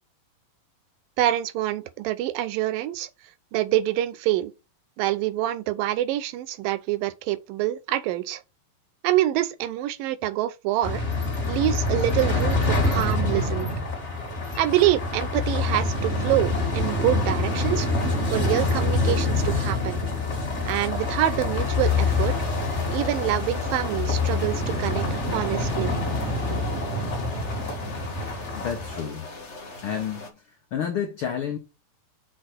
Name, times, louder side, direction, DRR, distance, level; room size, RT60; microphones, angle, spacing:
voice 1, 1.2-3.1 3.5-4.5 5.0-8.4 9.0-11.0 11.5-13.8 14.6-20.0 20.7-22.3 22.9-25.9, right 13 dB, 80° right, 2.4 m, -26 dB
sound 1, 10.8-29.0, left 3 dB, 25° left, 1.7 m, -26 dB
sound 2, 21.8-30.3, left 2 dB, 50° left, 0.8 m, -41 dB
voice 2, 28.5-29.3 29.8-31.6, left 8 dB, 85° left, 1.2 m, -30 dB
6.7 x 4.4 x 6.1 m
omnidirectional pair, 4.1 m